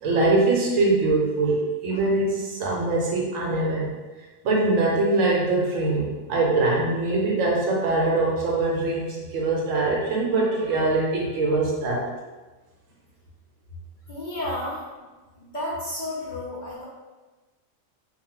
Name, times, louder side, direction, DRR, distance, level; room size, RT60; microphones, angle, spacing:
voice 1, 0.0-3.9 4.4-12.0, right 2 dB, 75° right, -3 dB, 1.0 m, -23 dB
voice 2, 14.1-14.8 15.4-16.8, left 1 dB, 45° left, -9 dB, 0.7 m, -32 dB
2.7 x 2.2 x 3.0 m, 1.2 s
omnidirectional pair, 1.4 m